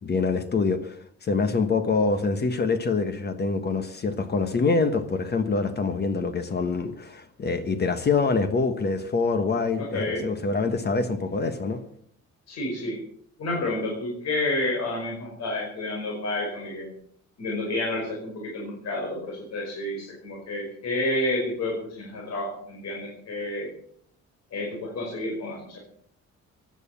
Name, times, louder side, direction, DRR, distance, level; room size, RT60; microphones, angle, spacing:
voice 1, 0.0-1.0 1.2-11.8, left 4 dB, 35° left, 10 dB, 1.3 m, -25 dB
voice 2, 9.9-10.2 12.5-13.0 13.4-16.9 17.4-23.7 24.5-25.8, left 2 dB, 60° left, -1 dB, 5.4 m, -30 dB
16.0 x 11.0 x 7.0 m, 0.64 s
cardioid pair, 165°, 30 cm